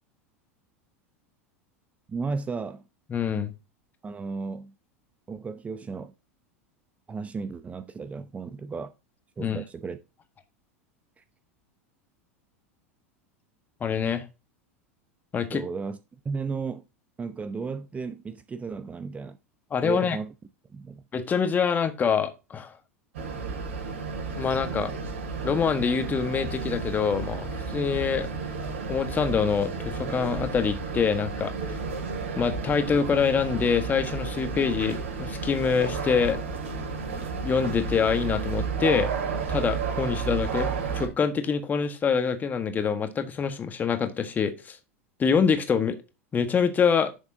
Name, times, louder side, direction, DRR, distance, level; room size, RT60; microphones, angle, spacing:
voice 1, 2.1-2.8 4.0-4.7 5.3-6.1 7.1-8.9 9.4-10.0 11.2-11.3 15.5-16.8 17.2-19.4 19.8-20.3 20.7-21.0, right 4 dB, 20° right, 0.7 m, -34 dB
voice 2, 3.1-3.5 9.4-9.6 13.8-14.2 15.3-15.6 19.7-20.2 21.1-22.7 24.4-24.9 25.4-28.3 28.9-31.5 32.4-36.4 37.4-39.1 39.5-44.8 45.2-46.0 46.3-47.1, left 6 dB, 25° left, 1.4 m, -25 dB
sound 1, 23.1-41.1, right 5 dB, 65° right, 3.6 m, -32 dB
11.0 x 6.9 x 2.8 m
figure-of-eight pair, 85°, 7 cm